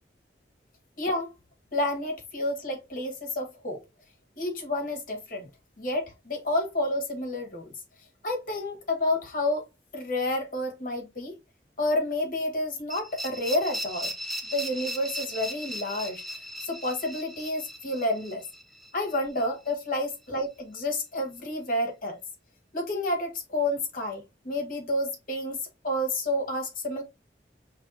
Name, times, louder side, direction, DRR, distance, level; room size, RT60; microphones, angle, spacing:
voice 1, 1.0-1.3 1.7-3.8 4.4-5.5 5.8-7.7 8.2-9.7 9.9-11.3 11.8-14.1 14.5-16.2 16.6-18.4 18.9-22.2 22.7-27.0, left 1 dB, 50° left, 1.4 m, -30 dB
sound 1, 12.9-19.7, equal, ahead, 0.6 m, -37 dB
5.5 x 3.1 x 2.6 m
head